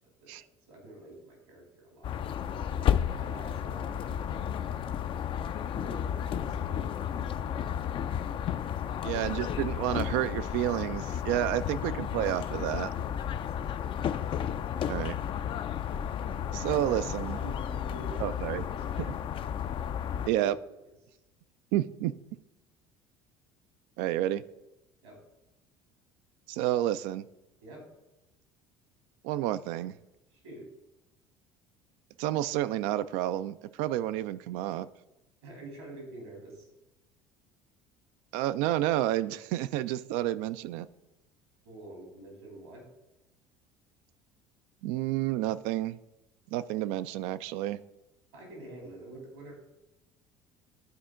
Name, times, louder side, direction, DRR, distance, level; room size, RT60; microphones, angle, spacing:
voice 1, 0.0-2.2 3.1-4.8 5.7-7.6 13.3-14.0 16.7-19.1 20.1-20.5 20.8-21.2 25.0-25.2 27.6-27.8 30.3-30.7 35.4-36.7 41.6-42.8 48.3-49.5, right 2 dB, 80° right, 0 dB, 2.9 m, -48 dB
sound 1, 2.0-20.3, left 9 dB, 40° left, 0.4 m, -33 dB
voice 2, 9.0-12.9 14.9-15.1 16.5-17.4 18.2-18.7 19.0-19.1 20.3-20.6 21.7-22.1 24.0-24.4 26.5-27.2 29.2-29.9 32.2-34.9 38.3-40.9 44.8-46.0 46.5-47.8, right 13 dB, 65° right, 14 dB, 0.4 m, -30 dB
11.5 x 4.2 x 3.7 m, 0.97 s
hypercardioid pair, 65°, 13 cm